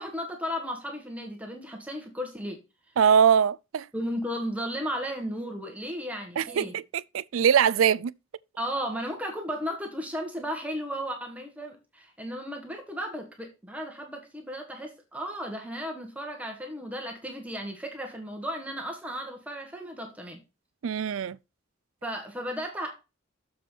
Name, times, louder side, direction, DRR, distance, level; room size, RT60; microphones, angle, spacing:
voice 1, 0.0-2.6 3.9-6.7 8.6-20.4 22.0-23.0, equal, 5° right, 1.4 m, -35 dB
voice 2, 3.0-3.9 6.4-8.1 20.8-21.4, right 7 dB, 70° right, 0.4 m, -22 dB
7.1 x 6.0 x 4.5 m
head